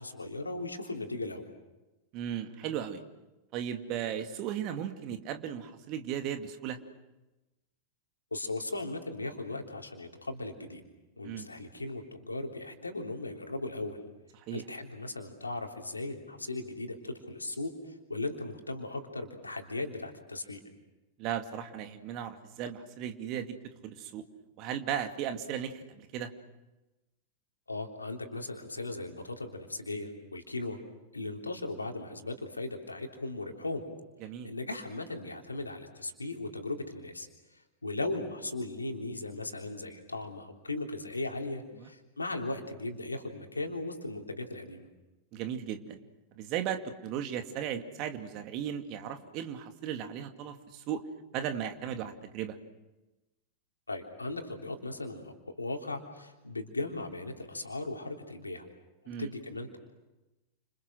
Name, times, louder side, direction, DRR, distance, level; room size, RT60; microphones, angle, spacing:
voice 1, 0.0-1.4 8.3-10.8 11.2-14.0 14.5-20.6 27.7-30.8 31.1-33.8 34.4-44.9 53.9-58.7 59.2-59.8, left 2 dB, 80° left, 3 dB, 3.5 m, -37 dB
voice 2, 2.1-3.0 3.5-6.8 11.2-11.5 14.4-14.6 21.2-23.5 23.8-24.2 24.6-26.3 34.2-34.5 41.8-41.9 45.3-46.0 46.4-51.0 51.3-52.6 59.1-59.3, right 9 dB, 40° right, 7 dB, 2.4 m, -36 dB
30.0 x 27.5 x 6.3 m, 1.0 s
figure-of-eight pair, 90°, 0 cm